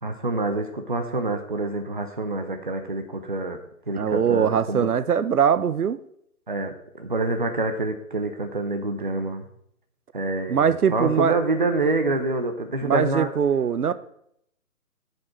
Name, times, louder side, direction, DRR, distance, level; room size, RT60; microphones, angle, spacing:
voice 1, 0.0-3.6 3.9-4.9 6.5-9.5 10.1-13.3, right 2 dB, 35° right, 6 dB, 0.8 m, -27 dB
voice 2, 3.9-6.0 10.5-11.4 12.8-13.9, right 7 dB, 85° right, 15 dB, 0.8 m, -22 dB
14.0 x 5.4 x 4.4 m, 0.72 s
hypercardioid pair, 175°, 44 cm